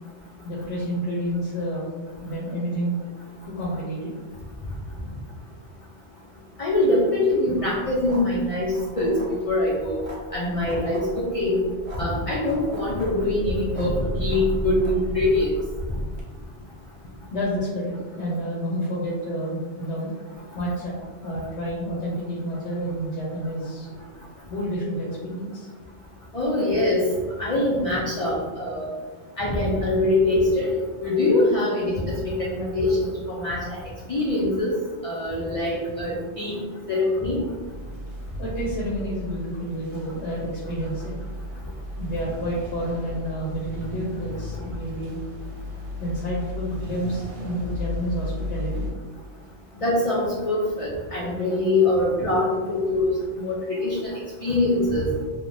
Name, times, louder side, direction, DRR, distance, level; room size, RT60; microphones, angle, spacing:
voice 1, 0.4-1.9 2.2-3.1 3.4-4.1 13.7-13.9 17.3-20.1 20.5-23.9 24.5-25.7 38.4-41.1 42.0-45.2 46.0-48.9, equal, 90° left, -5 dB, 0.9 m, -29 dB
voice 2, 6.6-9.1 9.5-10.0 10.3-11.6 12.0-15.5 26.3-27.0 27.4-28.9 29.4-30.7 31.0-33.8 34.1-34.7 35.0-36.6 36.9-37.4 49.8-53.1 53.4-55.0, left 2 dB, 60° left, -5 dB, 0.3 m, -23 dB
sound 1, 7.5-16.2, right 1 dB, 40° right, 0.6 m, -35 dB
sound 2, 37.6-48.9, left 1 dB, 90° right, 0.9 m, -35 dB
3.2 x 2.1 x 2.5 m, 1.4 s
omnidirectional pair, 1.1 m